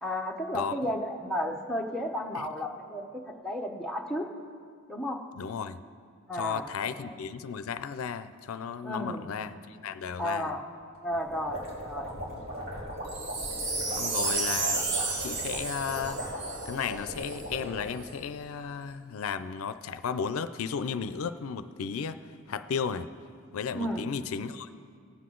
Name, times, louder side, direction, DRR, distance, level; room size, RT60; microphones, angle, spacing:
voice 1, 0.0-4.3 4.9-5.2 6.3-6.7 7.0-7.1 8.8-9.2 10.2-10.7 11.0-12.1 23.7-24.0, equal, 5° left, 0 dB, 0.8 m, -33 dB
voice 2, 5.4-5.8 6.3-10.5 12.3-12.5 13.9-14.8 15.2-16.2 16.7-23.1 23.5-24.7, left 6 dB, 85° left, 12 dB, 0.4 m, -34 dB
sound 1, 11.1-18.0, equal, 80° right, 3.5 m, -38 dB
Wind chime, 13.1-17.4 18.0-18.1, right 3 dB, 55° right, 1.1 m, -32 dB
19.0 x 7.8 x 3.8 m, 2.2 s
head